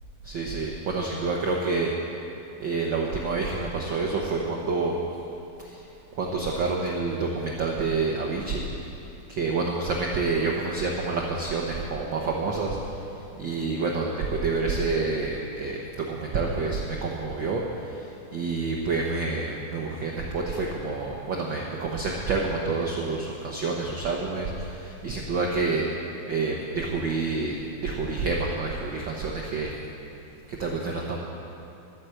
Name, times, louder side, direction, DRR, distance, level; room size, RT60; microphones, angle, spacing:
voice 1, 0.2-2.1 2.6-5.0 5.6-5.8 6.1-9.0 9.3-25.9 26.3-29.7 30.5-31.2, right 3 dB, 70° right, -1 dB, 1.1 m, -28 dB
12.0 x 10.0 x 7.8 m, 2.8 s
omnidirectional pair, 3.6 m